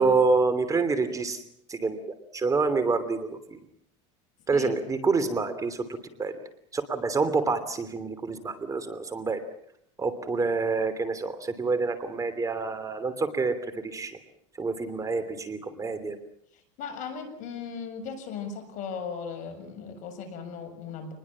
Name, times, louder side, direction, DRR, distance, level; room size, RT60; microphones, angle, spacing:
voice 1, 0.0-1.4 1.7-2.0 2.3-3.6 4.5-5.8 6.2-6.4 6.7-9.4 10.0-14.2 14.6-16.2, right 4 dB, 20° right, 11 dB, 3.0 m, -27 dB
voice 2, 16.8-21.1, left 6 dB, 60° left, 7 dB, 7.3 m, -37 dB
26.5 x 21.0 x 7.4 m, 0.70 s
supercardioid pair, 105°, 15 cm